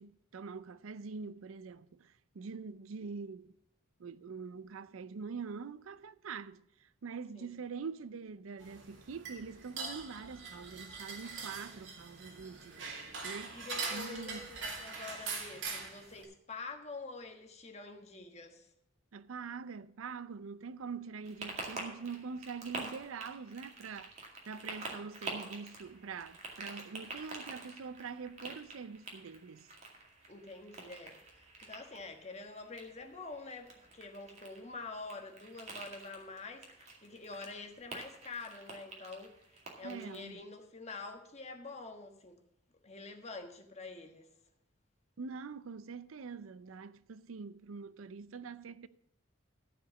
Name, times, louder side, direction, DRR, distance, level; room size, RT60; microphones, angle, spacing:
voice 1, 0.0-3.5 4.0-12.9 13.2-14.4 19.1-24.1 24.5-29.7 39.8-40.4 45.2-48.9, right 5 dB, 90° right, 0.5 m, -44 dB
sound 1, 8.6-16.2, right 4 dB, 70° right, 2.5 m, -42 dB
voice 2, 13.5-18.7 30.3-42.4 42.8-44.3, left 3 dB, 35° left, 1.3 m, -47 dB
sound 2, 21.2-40.3, right 3 dB, 35° right, 2.1 m, -48 dB
13.5 x 5.0 x 7.1 m
head